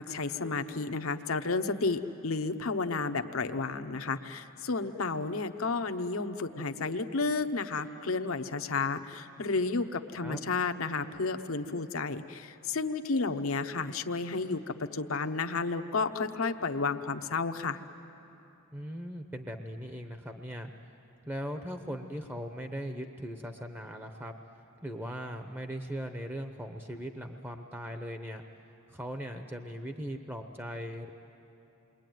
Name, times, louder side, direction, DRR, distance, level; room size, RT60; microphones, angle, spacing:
voice 1, 0.0-17.8, left 4 dB, 75° left, 9 dB, 1.0 m, -32 dB
voice 2, 18.7-20.7 21.3-24.3 24.8-28.4 28.9-31.1, equal, 10° right, 5 dB, 0.8 m, -39 dB
28.5 x 22.5 x 9.3 m, 2.9 s
head